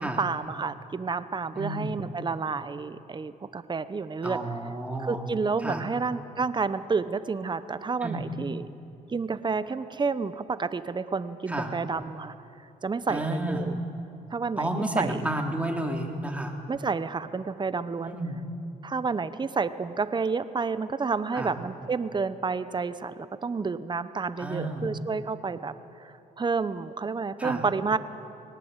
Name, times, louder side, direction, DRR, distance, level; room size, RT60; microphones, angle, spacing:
voice 1, 0.0-4.4 5.0-8.7 9.1-12.3 12.8-13.8 14.3-15.3 16.7-18.2 18.8-25.7 26.0-28.0, right 4 dB, 30° right, 13 dB, 0.9 m, -30 dB
voice 2, 1.5-2.0 4.2-5.2 5.6-5.8 8.0-8.3 11.5-11.7 13.1-13.7 14.6-16.6 18.0-18.4 21.3-21.5 24.4-24.9 27.4-27.6, right 1 dB, 10° right, 1 dB, 3.4 m, -31 dB
20.5 x 18.5 x 8.1 m, 2.7 s
supercardioid pair, 70°, 16 cm